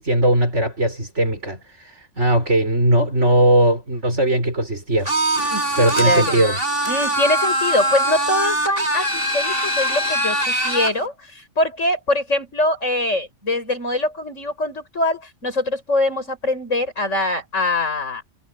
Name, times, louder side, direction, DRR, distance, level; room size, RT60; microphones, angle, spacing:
voice 1, 0.0-5.1 5.4-6.6, right 1 dB, 70° right, 6.4 m, -19 dB
sound 1, 5.1-11.0, right 1 dB, 50° right, 6.9 m, -22 dB
voice 2, 5.5-6.4 6.9-18.2, left 2 dB, 90° left, 6.8 m, -23 dB
omnidirectional pair, 1.3 m